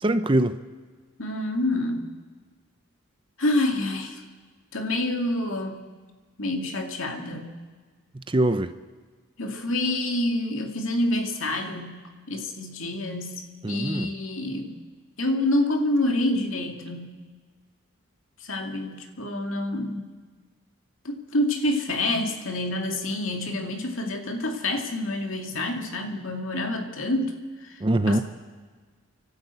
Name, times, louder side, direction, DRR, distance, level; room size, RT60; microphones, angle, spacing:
voice 1, 0.0-0.6 8.3-8.7 13.6-14.1 27.8-28.2, right 1 dB, 25° right, 11 dB, 0.6 m, -22 dB
voice 2, 1.2-2.1 3.4-4.2 4.7-5.8 6.4-7.6 9.4-14.7 15.2-17.2 18.4-20.1 21.0-27.4 27.6-27.8 28.1-28.2, left 1 dB, 70° left, 3 dB, 2.4 m, -27 dB
29.5 x 12.5 x 8.3 m, 1.5 s
head